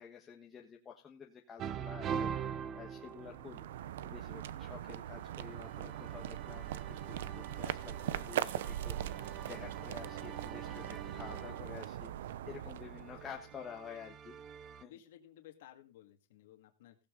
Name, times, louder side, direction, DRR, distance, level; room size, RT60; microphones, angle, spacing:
voice 1, 0.0-2.3 2.7-3.6 4.0-12.1 12.4-14.4 14.8-14.9, left 7 dB, 15° left, 0 dB, 1.3 m, -50 dB
sound 1, 1.6-4.0 5.2-11.9 12.9-14.8, right 8 dB, 25° right, 0.7 m, -44 dB
sound 2, 3.0-13.7, right 11 dB, 75° right, 0.8 m, -41 dB
voice 2, 14.8-17.0, left 12 dB, 70° left, 5 dB, 2.1 m, -57 dB
16.0 x 8.6 x 3.9 m, 0.30 s
supercardioid pair, 165°, 0 cm